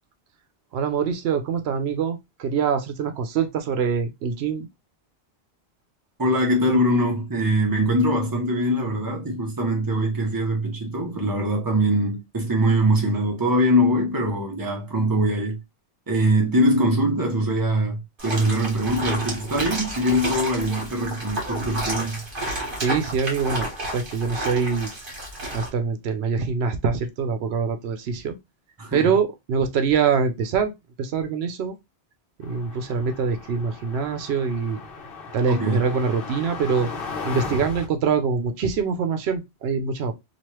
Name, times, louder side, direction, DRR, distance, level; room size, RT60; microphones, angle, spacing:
voice 1, 0.7-4.7 22.8-24.9 25.5-28.4 28.9-30.7 31.0-31.7 32.4-34.8 35.3-36.9 37.2-40.1, right 5 dB, 80° right, 0.8 m, -24 dB
voice 2, 6.2-15.6 16.1-22.2 28.8-29.1 35.5-35.8, equal, 20° right, 0.9 m, -22 dB
sound 1, 18.2-25.7, right 1 dB, 60° right, 1.5 m, -31 dB
sound 2, 32.4-37.9, left 4 dB, 65° left, 0.9 m, -36 dB
3.0 x 2.4 x 3.0 m
omnidirectional pair, 1.1 m